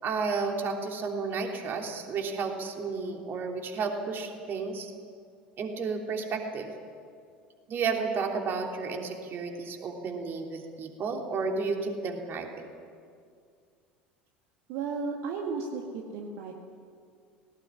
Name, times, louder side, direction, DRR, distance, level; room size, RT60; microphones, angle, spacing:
voice 1, 0.0-4.9 5.6-6.7 7.7-12.6, right 4 dB, 40° right, 3 dB, 3.2 m, -32 dB
voice 2, 14.7-16.5, right 4 dB, 55° right, 1 dB, 2.0 m, -34 dB
18.5 x 18.0 x 9.8 m, 2.3 s
figure-of-eight pair, 70°, 6 cm